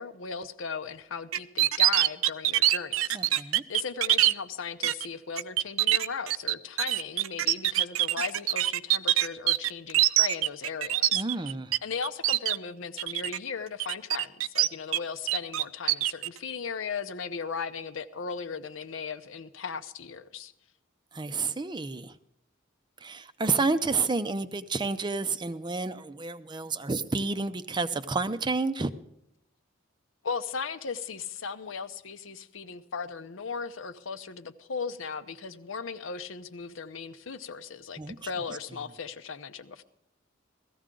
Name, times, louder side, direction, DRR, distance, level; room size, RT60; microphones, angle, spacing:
voice 1, 0.0-11.5 11.8-20.5 30.2-39.8, left 5 dB, 75° left, 11 dB, 0.7 m, -37 dB
sound 1, 1.3-4.3 4.8-5.1 5.4-11.8 12.0-12.6 13.0-13.4 13.8-15.0 15.3-16.3, right 14 dB, 90° right, 0.4 m, -24 dB
voice 2, 3.1-3.6 11.1-11.8 21.1-22.1 23.0-28.9 38.0-38.2, right 3 dB, 20° right, 13 dB, 0.5 m, -30 dB
16.5 x 14.0 x 3.8 m, 0.81 s
head